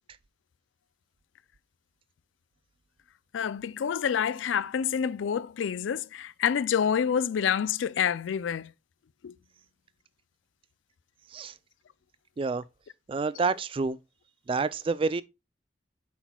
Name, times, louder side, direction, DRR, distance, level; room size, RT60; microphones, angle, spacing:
voice 1, 3.3-8.7 9.2-9.3, left 8 dB, 75° left, 0.4 m, -28 dB
voice 2, 13.1-14.0 14.5-15.2, right 4 dB, 30° right, 0.3 m, -28 dB
8.3 x 5.9 x 2.2 m
head